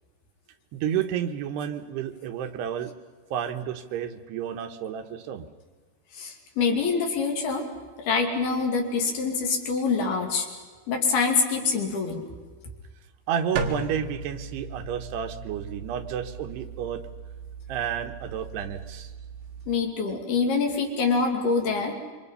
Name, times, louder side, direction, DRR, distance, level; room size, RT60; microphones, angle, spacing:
voice 1, 0.7-2.9 3.3-5.5 13.3-17.0 17.7-19.1, right 9 dB, 80° right, 7 dB, 3.2 m, -31 dB
voice 2, 6.1-7.7 8.0-10.5 10.9-12.3 19.7-21.9, left 4 dB, 70° left, 2 dB, 4.5 m, -25 dB
sound 1, 13.6-19.8, right 4 dB, 60° right, 3.2 m, -37 dB
27.5 x 24.5 x 5.6 m, 1.4 s
omnidirectional pair, 4.8 m